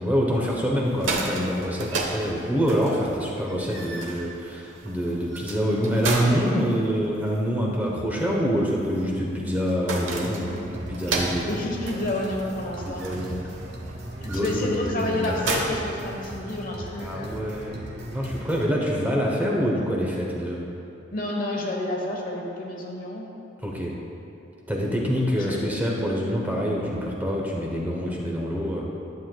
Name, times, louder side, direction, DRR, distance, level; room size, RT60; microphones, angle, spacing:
voice 1, 0.0-11.6 12.8-13.4 14.3-15.4 17.0-20.6 23.6-24.0 24.7-28.8, equal, 10° right, -3 dB, 0.8 m, -26 dB
sound 1, 0.8-16.7, right 3 dB, 85° right, 0.9 m, -34 dB
sound 2, 10.7-18.7, right 1 dB, 60° right, 1.1 m, -38 dB
voice 2, 11.5-13.0 14.2-17.4 21.1-23.3 25.4-25.7, left 1 dB, 45° left, -1 dB, 1.1 m, -29 dB
11.5 x 7.8 x 2.3 m, 2.7 s
head